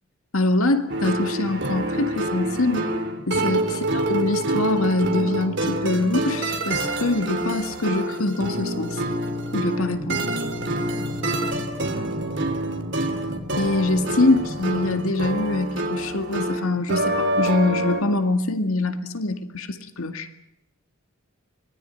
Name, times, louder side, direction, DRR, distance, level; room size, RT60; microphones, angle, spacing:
voice 1, 0.3-2.9 3.3-9.0 9.5-10.3 13.6-20.3, left 2 dB, 75° left, 7 dB, 2.1 m, -24 dB
sound 1, 0.9-18.0, right 1 dB, 55° right, 3.1 m, -27 dB
sound 2, 9.8-15.1, equal, ahead, 3.7 m, -37 dB
25.0 x 20.0 x 9.3 m, 0.82 s
head